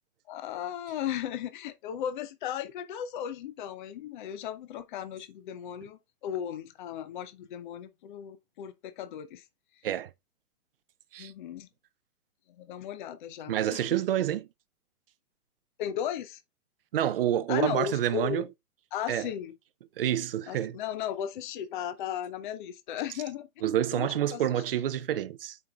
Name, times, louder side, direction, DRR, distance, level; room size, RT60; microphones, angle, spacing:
voice 1, 0.3-9.4 11.2-11.7 12.6-14.0 15.8-16.4 17.5-18.5 18.9-19.5 20.5-23.5 23.9-24.4, left 10 dB, 35° left, 0.6 m, -36 dB
voice 2, 13.5-14.5 16.9-18.5 19.1-19.3 20.0-20.8 23.6-25.6, right 11 dB, 40° right, 0.4 m, -28 dB
8.0 x 5.3 x 2.3 m
hypercardioid pair, 140°, 45 cm